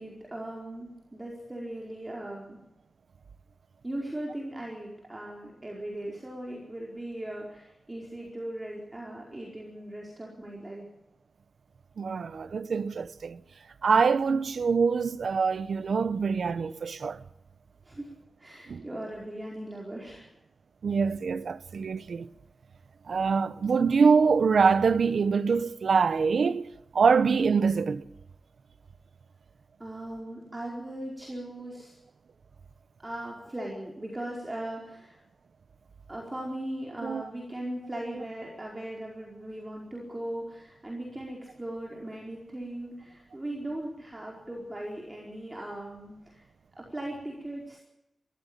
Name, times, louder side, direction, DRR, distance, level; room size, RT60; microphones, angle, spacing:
voice 1, 0.0-2.6 3.8-10.9 17.8-18.1 18.4-20.3 29.8-32.0 33.0-35.2 36.1-46.5 46.8-47.8, right 1 dB, 15° right, 4.6 m, -38 dB
voice 2, 12.0-13.4 13.8-17.2 18.7-18.9 20.8-22.3 23.1-26.6 26.9-28.0 37.0-37.2, right 5 dB, 70° right, 0.9 m, -24 dB
23.5 x 15.5 x 8.8 m
wide cardioid pair, 130°, 0 cm